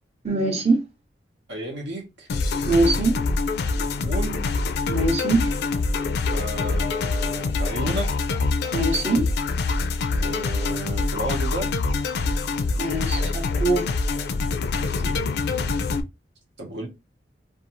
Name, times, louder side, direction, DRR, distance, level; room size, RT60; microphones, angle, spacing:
voice 1, 0.2-0.8 2.7-3.2 4.9-5.5 8.7-9.3 12.8-13.9, right 2 dB, 40° right, 0.7 m, -22 dB
voice 2, 1.5-2.3 3.7-4.4 6.3-8.3 10.2-11.7 14.8-15.2 16.6-16.9, right 1 dB, 75° right, 0.9 m, -33 dB
sound 1, 2.3-16.0, left 3 dB, 65° left, 0.3 m, -25 dB
2.5 x 2.3 x 2.9 m
head